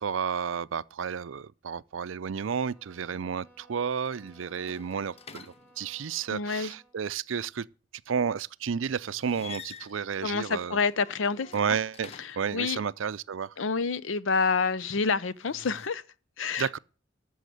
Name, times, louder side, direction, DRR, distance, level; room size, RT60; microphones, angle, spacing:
voice 1, 0.0-7.7 8.1-10.8 11.5-12.1 12.4-13.5 16.6-16.8, right 6 dB, 90° right, 0.5 m, -31 dB
sound 1, 2.3-7.0, right 1 dB, 5° left, 2.7 m, -60 dB
sound 2, 3.9-6.2 9.0-12.6 15.2-15.9, left 6 dB, 35° left, 0.5 m, -49 dB
voice 2, 6.3-6.7 10.2-11.5 12.2-12.8 13.6-16.0 16.4-16.7, left 5 dB, 80° left, 0.6 m, -28 dB
13.5 x 6.4 x 7.8 m
head